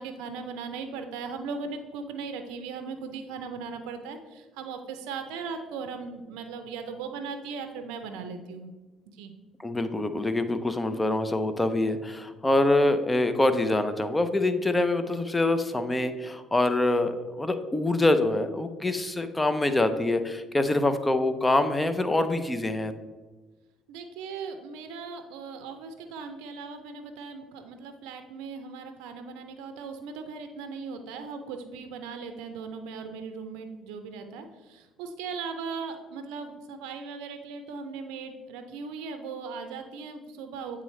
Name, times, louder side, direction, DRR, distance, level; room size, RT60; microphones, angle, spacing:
voice 1, 0.0-8.7 9.1-9.3 23.9-40.8, right 5 dB, 80° right, 7 dB, 0.5 m, -38 dB
voice 2, 9.6-22.9, left 2 dB, 15° left, 9 dB, 0.6 m, -25 dB
8.3 x 3.7 x 3.2 m, 1.2 s
supercardioid pair, 70°, 0 cm